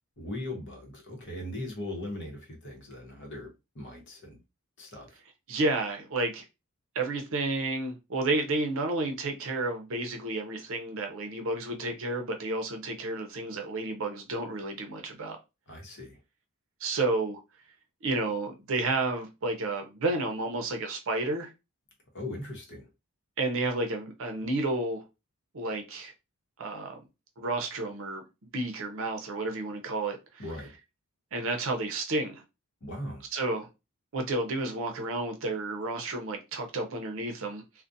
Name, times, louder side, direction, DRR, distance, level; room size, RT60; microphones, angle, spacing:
voice 1, 0.2-4.4 4.8-5.2 15.7-16.2 22.1-22.9 30.4-30.7 32.8-33.3, left 1 dB, 55° left, 0.9 m, -39 dB
voice 2, 5.5-6.5 6.9-15.4 16.8-17.4 18.0-21.5 23.4-25.0 25.5-26.1 26.6-27.0 27.4-28.2 28.5-30.4 31.3-32.4 33.3-33.7 34.1-37.6, right 2 dB, 60° right, 0.6 m, -31 dB
2.4 x 2.1 x 2.6 m
head